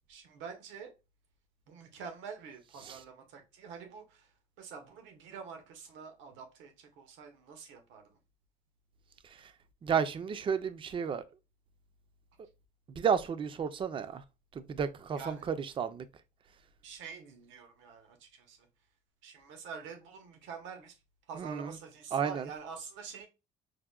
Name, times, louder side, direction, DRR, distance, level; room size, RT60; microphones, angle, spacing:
voice 1, 0.1-0.9 1.7-8.2 15.1-15.5 16.8-18.7 19.2-21.0 21.3-23.3, right 6 dB, 80° right, 0.9 m, -47 dB
voice 2, 9.8-11.2 13.0-14.2 14.5-16.1 21.4-21.7 22.1-22.4, right 7 dB, 25° right, 0.4 m, -32 dB
4.7 x 2.1 x 2.2 m
cardioid pair, 115°, 19 cm